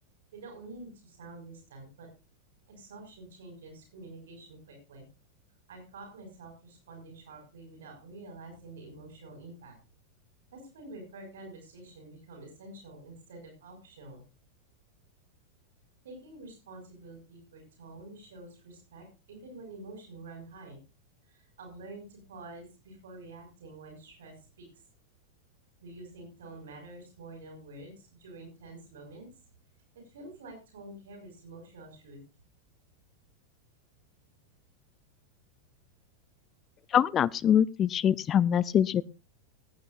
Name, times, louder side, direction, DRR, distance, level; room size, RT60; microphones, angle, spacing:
voice 1, 0.3-2.1 2.7-5.1 5.7-9.8 10.5-14.2 16.0-20.8 21.3-24.7 25.8-29.3 30.0-32.2, right 2 dB, 60° right, 3 dB, 6.2 m, -48 dB
voice 2, 36.9-39.0, left 9 dB, 30° left, 23 dB, 0.7 m, -24 dB
18.5 x 12.0 x 2.6 m, 0.30 s
figure-of-eight pair, 85°, 0 cm